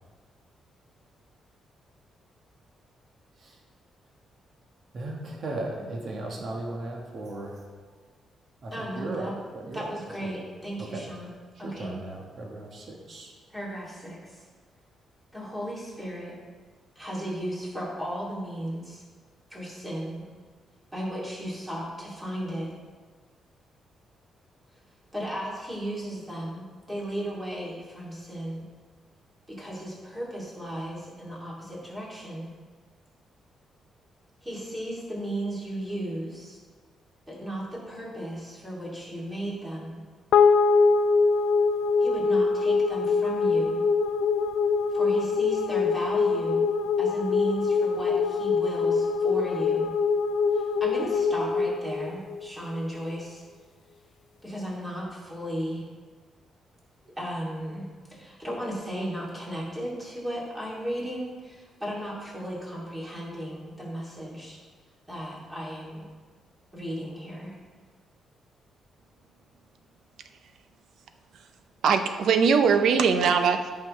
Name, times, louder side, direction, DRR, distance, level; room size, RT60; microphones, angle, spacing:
voice 1, 4.9-7.7 8.6-9.9 10.2-10.3 10.8-11.1 11.5-13.3, right 2 dB, 45° right, -1 dB, 1.4 m, -36 dB
voice 2, 8.7-9.3 9.7-11.3 11.6-12.0 13.5-14.5 15.3-16.4 16.9-19.0 19.5-20.2 20.9-22.7 25.1-28.6 29.5-32.5 34.4-36.6 37.3-40.0 42.0-43.8 44.9-46.7 47.0-49.9 50.5-53.4 54.4-55.9 57.0-64.6 65.1-66.1 66.7-67.5, equal, 10° right, -5 dB, 2.7 m, -35 dB
sound 1, 40.3-52.8, left 4 dB, 75° left, 0.4 m, -24 dB
voice 3, 71.8-73.7, right 6 dB, 70° right, 8 dB, 0.6 m, -21 dB
14.0 x 6.1 x 3.2 m, 1.5 s
cardioid pair, 140°, 0 cm